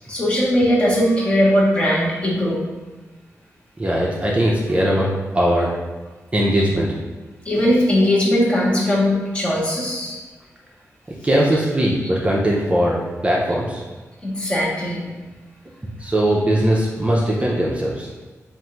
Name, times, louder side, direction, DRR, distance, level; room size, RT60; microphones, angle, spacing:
voice 1, 0.1-2.6 7.4-10.2 14.2-15.0, equal, 20° left, -5 dB, 1.1 m, -19 dB
voice 2, 3.8-5.8 6.3-7.0 11.2-13.8 15.8-18.1, right 1 dB, 20° right, -4 dB, 0.6 m, -20 dB
3.5 x 2.5 x 4.4 m, 1.2 s
wide cardioid pair, 100°, 6 cm